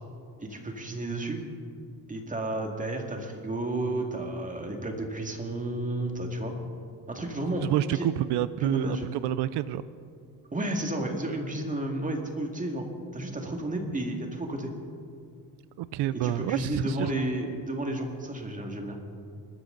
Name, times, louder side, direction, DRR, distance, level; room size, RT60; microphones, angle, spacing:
voice 1, 0.4-1.4 2.1-6.5 7.1-7.6 8.6-9.1 10.5-12.9 13.1-14.7 16.1-19.0, right 1 dB, 20° right, 2 dB, 2.2 m, -32 dB
voice 2, 7.6-9.8 15.8-17.1, right 13 dB, 85° right, 15 dB, 0.5 m, -28 dB
24.0 x 13.5 x 3.9 m, 2.3 s
cardioid pair, 115°, 40 cm